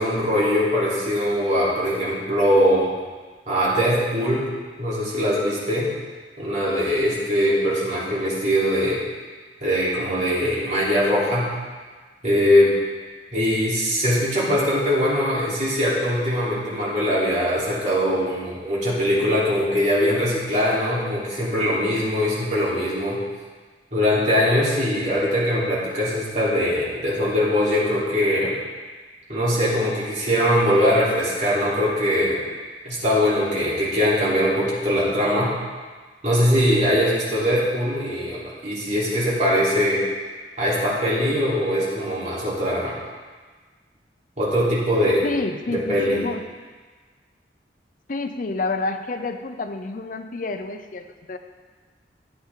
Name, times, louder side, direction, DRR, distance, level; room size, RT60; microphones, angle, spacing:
voice 1, 0.0-2.9 3.5-4.5 4.8-5.9 6.4-9.0 9.6-11.5 12.2-12.7 13.3-23.2 23.9-28.6 29.3-32.4 32.8-35.5 36.2-40.0 40.6-42.9 44.4-45.3 45.7-46.3, equal, 45° right, -8 dB, 3.6 m, -21 dB
voice 2, 45.2-46.4 48.1-51.4, left 3 dB, 50° left, 7 dB, 0.6 m, -29 dB
13.0 x 9.4 x 3.8 m, 1.4 s
head